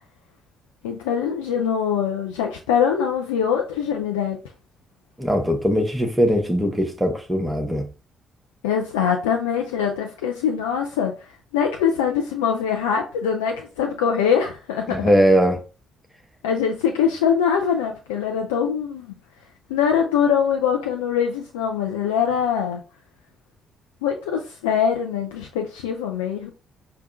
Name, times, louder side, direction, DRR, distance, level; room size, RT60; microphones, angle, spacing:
voice 1, 0.8-4.4 8.6-11.1 11.5-15.1 16.4-19.2 19.7-22.8 24.0-26.5, left 7 dB, 75° left, 0.3 m, -23 dB
voice 2, 5.2-7.9 14.9-15.6, equal, 10° right, 1.0 m, -20 dB
4.8 x 2.2 x 2.5 m
figure-of-eight pair, 40°, 0 cm